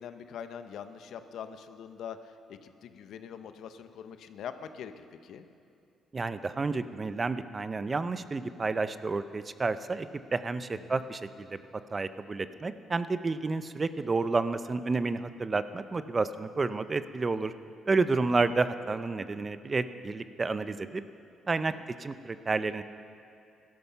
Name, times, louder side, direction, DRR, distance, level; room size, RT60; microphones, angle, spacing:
voice 1, 0.0-5.4 10.7-11.1 18.3-18.5 21.7-21.8, left 8 dB, 75° left, 9 dB, 0.7 m, -43 dB
voice 2, 6.1-10.1 10.3-11.6 11.9-17.5 17.9-21.0 21.5-21.7 22.0-22.8, right 3 dB, 30° right, 12 dB, 0.6 m, -30 dB
16.0 x 12.5 x 5.8 m, 2.5 s
cardioid pair, 90°, 0 cm